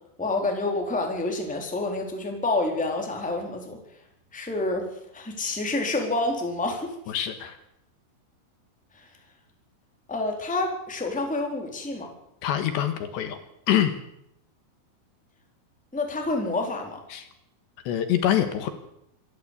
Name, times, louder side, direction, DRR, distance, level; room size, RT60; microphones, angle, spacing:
voice 1, 0.2-3.8 4.3-7.0 10.1-12.1 15.9-17.0, left 2 dB, ahead, 2 dB, 3.0 m, -28 dB
voice 2, 7.1-7.6 12.4-13.4 13.7-13.9 17.1-17.3 17.9-18.7, left 10 dB, 70° left, 9 dB, 3.3 m, -25 dB
26.5 x 12.5 x 8.4 m, 0.78 s
omnidirectional pair, 5.8 m